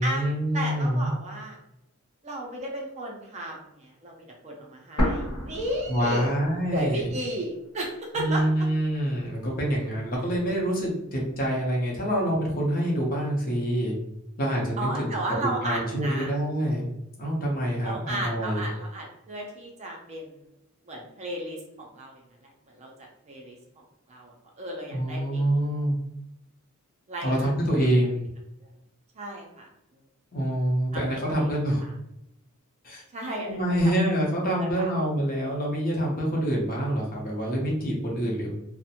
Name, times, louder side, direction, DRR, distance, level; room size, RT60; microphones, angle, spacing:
voice 1, 0.0-1.1 5.9-7.1 8.1-13.9 14.4-15.1 15.4-16.9 17.2-18.6 24.9-26.0 27.2-28.2 30.3-31.8 32.8-33.0 33.4-38.5, equal, 40° left, -2 dB, 0.7 m, -26 dB
voice 2, 0.5-1.6 2.2-6.4 6.7-8.4 14.8-16.3 17.8-20.3 20.9-22.2 22.7-23.6 24.1-25.5 27.1-27.5 29.2-29.7 30.9-31.5 31.8-31.9 33.1-33.9 34.5-35.1, right 1 dB, 30° right, 0 dB, 0.5 m, -34 dB
sound 1, 5.0-6.9 7.2-7.3 8.0-9.0, equal, 85° left, 1.0 m, -30 dB
2.5 x 2.1 x 2.8 m, 0.84 s
head